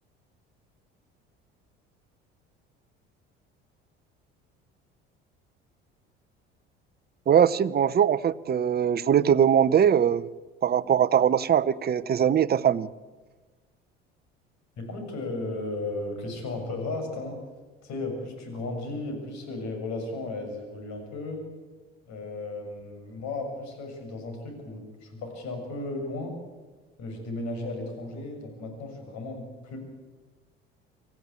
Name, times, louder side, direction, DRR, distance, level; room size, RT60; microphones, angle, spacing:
voice 1, 7.3-10.3 10.6-12.9, right 8 dB, 30° right, 15 dB, 0.9 m, -21 dB
voice 2, 14.8-17.4 17.8-21.5 22.1-26.3 27.0-29.8, left 2 dB, 60° left, 4 dB, 6.9 m, -35 dB
25.0 x 16.0 x 8.5 m, 1.3 s
hypercardioid pair, 60°, 32 cm